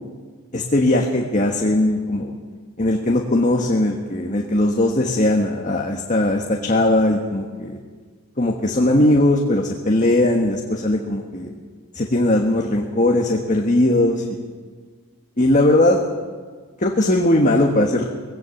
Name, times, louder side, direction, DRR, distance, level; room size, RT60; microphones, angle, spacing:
voice 1, 0.5-2.3 2.8-7.8 8.4-11.5 11.9-14.1 15.4-16.0 16.8-18.1, left 1 dB, 35° left, 1 dB, 1.4 m, -19 dB
20.0 x 17.0 x 7.9 m, 1.5 s
head